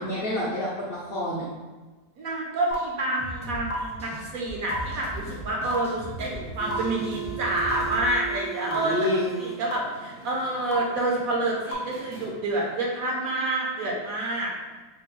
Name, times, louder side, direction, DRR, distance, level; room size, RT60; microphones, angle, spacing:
voice 1, 0.0-1.5 8.6-9.3, left 2 dB, 60° left, -8 dB, 0.6 m, -28 dB
voice 2, 2.2-9.1 9.4-14.8, right 2 dB, 65° right, -2 dB, 1.0 m, -28 dB
sound 1, 2.7-2.8 3.7-3.8 4.7-4.8 5.7-5.8 6.7-6.8 7.7-7.8 8.7-8.8 9.7-9.8 10.7-10.8 11.7-11.8, left 1 dB, 80° left, 1.2 m, -30 dB
sound 2, 3.2-8.1, right 1 dB, 10° left, 0.3 m, -39 dB
sound 3, 6.3-12.8, right 11 dB, 40° right, 0.6 m, -39 dB
4.3 x 2.2 x 3.0 m, 1.2 s
omnidirectional pair, 1.7 m